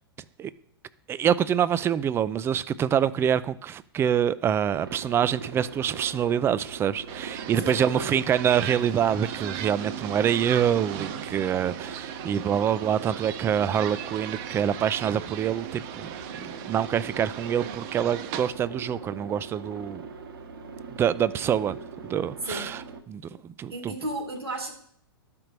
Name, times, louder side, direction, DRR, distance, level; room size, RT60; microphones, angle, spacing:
voice 1, 1.1-16.1 16.7-20.0 21.0-21.8 22.1-22.8 23.1-23.2 23.6-23.9, right 9 dB, 20° right, 0.4 m, -25 dB
Aircraft, 4.7-23.0, right 5 dB, 65° right, 1.1 m, -41 dB
sound 1, 7.1-18.5, right 10 dB, 40° right, 0.7 m, -38 dB
voice 2, 7.6-8.1 22.4-22.7 23.7-24.7, right 1 dB, 85° right, 2.1 m, -34 dB
13.5 x 5.2 x 3.1 m
figure-of-eight pair, 105°, 13 cm